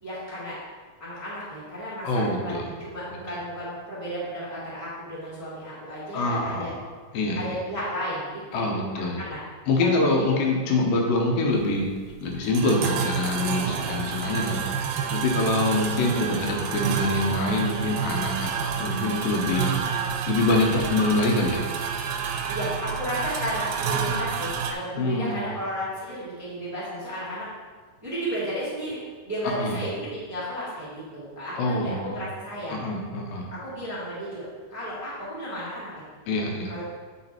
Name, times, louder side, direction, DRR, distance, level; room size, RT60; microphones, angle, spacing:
voice 1, 0.0-0.6 1.0-6.7 7.3-8.7 8.9-9.4 9.8-10.3 13.4-13.9 14.4-14.6 20.6-20.8 22.5-27.5 28.0-29.0 29.2-32.8 33.5-35.9 36.6-36.9, equal, 10° right, -9 dB, 1.1 m, -33 dB
voice 2, 2.0-2.7 6.1-6.8 7.1-7.5 8.5-9.2 9.7-11.9 12.2-21.7 23.9-24.2 25.0-25.4 29.6-29.8 31.6-32.2 32.7-33.5 36.3-36.7, left 2 dB, 80° left, 0 dB, 2.7 m, -25 dB
sound 1, 11.5-24.7, right 7 dB, 85° right, 2.4 m, -29 dB
8.2 x 4.3 x 4.3 m, 1.5 s
omnidirectional pair, 4.1 m